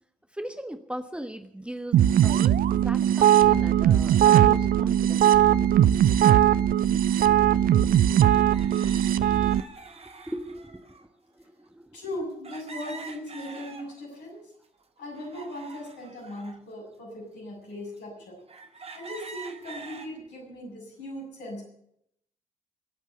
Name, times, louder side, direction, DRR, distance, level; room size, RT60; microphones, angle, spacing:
voice 1, 0.3-2.5 2.8-5.4 9.9-11.0 11.3-12.0 20.1-20.3, right 1 dB, 5° right, 8 dB, 1.4 m, -39 dB
sound 1, 1.9-9.6, right 11 dB, 50° right, 0.6 m, -20 dB
sound 2, 7.1-7.2 8.3-11.0 12.4-14.2 14.6-16.6 17.2-17.3 18.0-18.1 18.5-20.1, right 3 dB, 30° right, 2.1 m, -45 dB
voice 2, 7.8-8.3 11.9-14.5 15.0-18.4 18.9-21.6, left 1 dB, 65° left, -1 dB, 7.6 m, -39 dB
22.0 x 8.2 x 8.0 m, 0.73 s
figure-of-eight pair, 45°, 19 cm